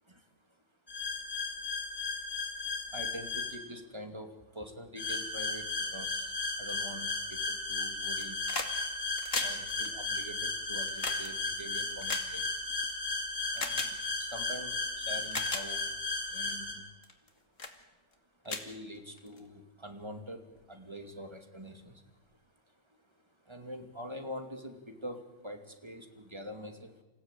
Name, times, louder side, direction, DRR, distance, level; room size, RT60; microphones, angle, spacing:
sound 1, 0.9-3.5 5.0-16.7, left 3 dB, 30° left, 5.0 m, -35 dB
voice 1, 2.4-8.4 9.0-12.5 13.5-15.9 16.2-16.8 18.4-22.4 22.7-27.0, equal, 20° right, 5 dB, 2.7 m, -45 dB
sound 2, 8.0-8.7 9.0-12.9 13.5-13.9 14.7-14.8 15.2-15.6 16.2-16.5 17.0-17.3 17.6-17.8 18.1-18.2 18.4-19.4 20.5-20.6, left 3 dB, 90° left, 2.6 m, -37 dB
27.5 x 16.5 x 9.1 m, 1.1 s
omnidirectional pair, 1.3 m